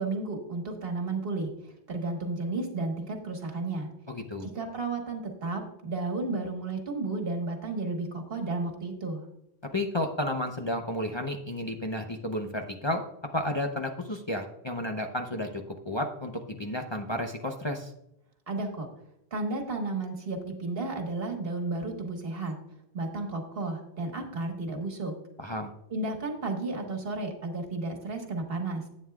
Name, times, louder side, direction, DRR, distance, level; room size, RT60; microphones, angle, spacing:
voice 1, 0.0-3.9 4.4-9.3 18.5-18.9 19.3-22.6 22.9-25.1 25.9-28.8, right 3 dB, 65° right, 3 dB, 1.6 m, -33 dB
voice 2, 4.1-4.5 9.7-13.0 13.3-17.9 25.4-25.7, left 1 dB, 30° left, 2 dB, 0.7 m, -32 dB
11.0 x 8.8 x 2.4 m, 0.84 s
omnidirectional pair, 1.1 m